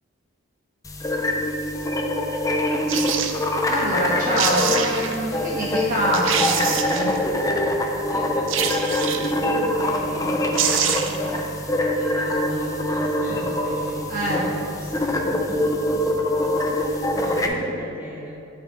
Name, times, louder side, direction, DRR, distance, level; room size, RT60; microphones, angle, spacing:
sound 1, 0.8-17.5, left 1 dB, 15° left, 0.5 m, -24 dB
sound 2, 2.9-3.4 4.1-4.2 4.4-5.2 5.7-5.8 6.1-7.2 8.5-9.4 10.2-10.3 10.5-11.3 11.6-11.7, right 8 dB, 65° right, 0.5 m, -25 dB
voice 1, 3.7-7.1 13.3-13.5 14.1-14.4, equal, 40° right, -6 dB, 1.2 m, -25 dB
voice 2, 7.9-18.3, equal, 10° right, -8 dB, 1.6 m, -37 dB
11.0 x 5.6 x 3.6 m, 2.8 s
head